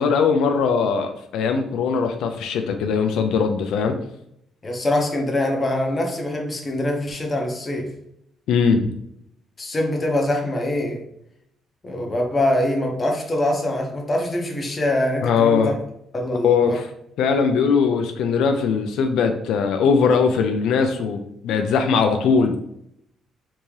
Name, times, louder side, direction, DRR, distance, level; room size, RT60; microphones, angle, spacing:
voice 1, 0.0-3.9 8.5-8.9 15.2-15.7 16.4-16.8 17.2-22.6, left 5 dB, 80° left, 6 dB, 0.3 m, -20 dB
voice 2, 4.6-7.9 9.6-11.0 11.8-15.8 16.1-16.8, left 1 dB, 25° left, 2 dB, 0.7 m, -24 dB
3.4 x 2.7 x 3.1 m, 0.76 s
cardioid pair, 135°, 0 cm